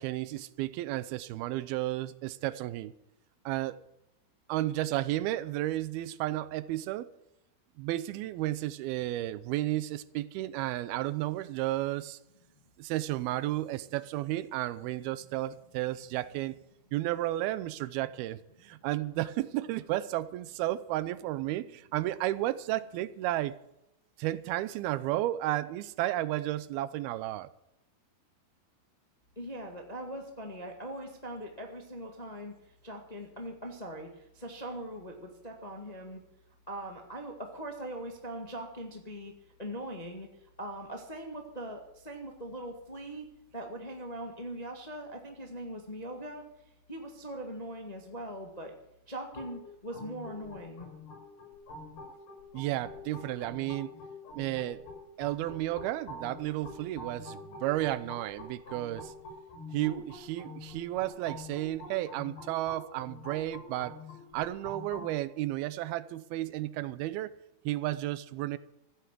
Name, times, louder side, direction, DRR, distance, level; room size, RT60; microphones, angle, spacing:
voice 1, 0.0-2.9 3.5-3.8 4.5-7.1 7.8-12.2 12.8-16.6 16.9-23.6 24.2-27.5 52.5-53.9 54.3-54.8 55.2-59.1 59.7-64.0 64.3-67.3 67.7-68.6, right 15 dB, 85° right, 2.6 m, -33 dB
voice 2, 29.3-36.2 36.7-39.3 39.6-43.3 43.5-46.4 46.9-48.7 49.1-50.9, right 1 dB, 20° left, 0.9 m, -41 dB
sound 1, 49.3-65.1, left 2 dB, 60° left, 7.7 m, -46 dB
15.0 x 9.0 x 9.2 m
omnidirectional pair, 4.4 m